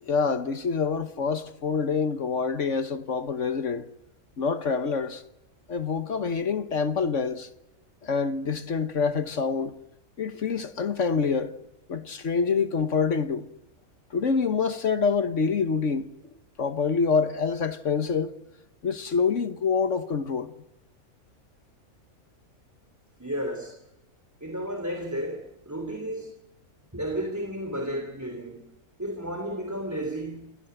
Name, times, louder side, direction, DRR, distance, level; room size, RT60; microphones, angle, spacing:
voice 1, 0.0-3.9 4.4-5.2 5.7-7.5 8.0-9.7 10.2-11.5 11.9-13.5 14.1-16.1 16.6-18.3 18.8-20.5, left 5 dB, 55° left, 1.4 m, -26 dB
voice 2, 23.2-23.8 24.4-26.3 26.9-28.7 29.0-30.7, right 1 dB, 10° right, 3.1 m, -33 dB
28.5 x 18.0 x 7.9 m
omnidirectional pair, 1.5 m